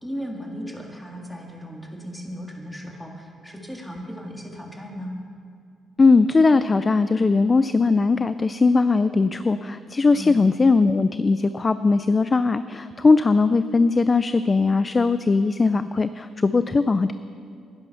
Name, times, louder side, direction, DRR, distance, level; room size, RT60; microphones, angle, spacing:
voice 1, 0.0-5.2 10.1-10.5, equal, 5° left, 0 dB, 1.9 m, -36 dB
voice 2, 6.0-17.1, left 4 dB, 30° left, 13 dB, 0.3 m, -19 dB
11.0 x 10.5 x 5.8 m, 2.3 s
cardioid pair, 90°, 0 cm